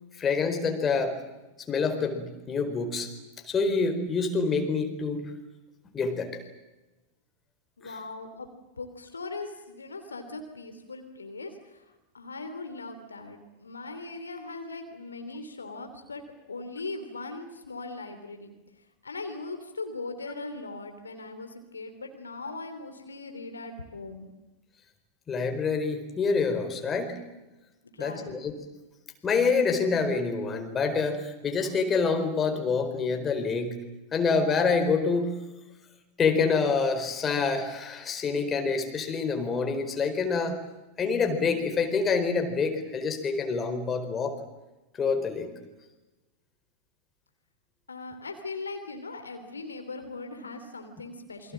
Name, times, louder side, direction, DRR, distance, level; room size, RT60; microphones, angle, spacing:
voice 1, 0.2-1.2 1.7-3.1 3.4-5.3 5.9-6.4 25.3-27.2 28.0-28.5 29.2-33.8 34.1-35.3 36.2-40.6 41.0-44.4 45.0-45.5 51.4-51.5, left 4 dB, 20° left, 5 dB, 4.5 m, -26 dB
voice 2, 7.8-16.2 16.5-24.3 27.8-28.4 47.9-51.5, left 3 dB, 75° left, 6 dB, 3.0 m, -40 dB
28.0 x 23.5 x 7.6 m, 1.1 s
figure-of-eight pair, 90°, 0 cm